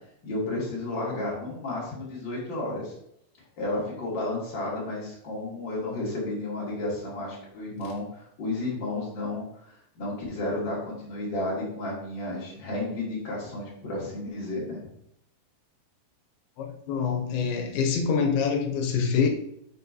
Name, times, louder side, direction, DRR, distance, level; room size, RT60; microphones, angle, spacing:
voice 1, 0.2-2.9 3.6-14.8, left 2 dB, 35° left, 2.8 m, -32 dB
voice 2, 16.6-19.3, left 6 dB, 85° left, 2.8 m, -25 dB
8.4 x 6.1 x 2.8 m
omnidirectional pair, 4.3 m